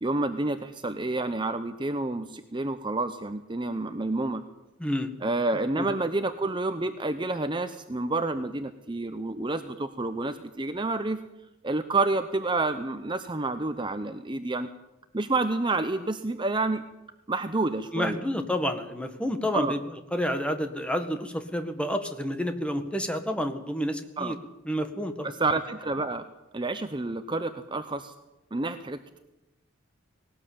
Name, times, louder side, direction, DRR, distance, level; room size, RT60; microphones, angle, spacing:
voice 1, 0.0-4.4 5.2-11.2 11.6-14.7 15.1-16.8 17.3-18.2 19.5-19.8 24.2-24.3 25.2-26.3 26.5-28.1 28.5-29.2, right 2 dB, 25° right, 9 dB, 0.8 m, -29 dB
voice 2, 4.8-5.1 5.8-5.9 17.9-19.8 20.1-24.4 24.7-25.3, equal, 5° left, 7 dB, 1.7 m, -29 dB
19.5 x 18.0 x 8.7 m, 0.97 s
head